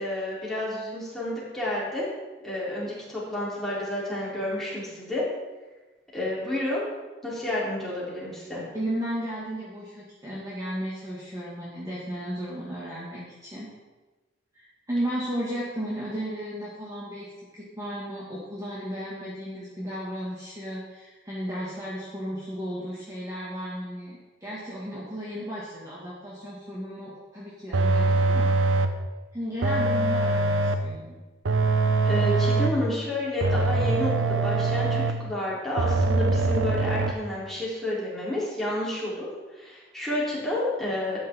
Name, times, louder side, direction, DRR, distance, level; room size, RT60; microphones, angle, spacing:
voice 1, 0.0-2.1 2.4-5.2 6.1-6.9 7.2-8.6 32.0-41.2, left 1 dB, ahead, -8 dB, 3.6 m, -30 dB
voice 2, 8.7-13.7 14.5-28.5 29.3-31.2, equal, 20° right, -8 dB, 2.1 m, -34 dB
sound 1, 27.7-29.1 29.6-31.0 31.4-32.9 33.4-35.3 35.8-37.1, right 3 dB, 85° right, 0.7 m, -23 dB
12.5 x 9.0 x 3.8 m, 1.2 s
head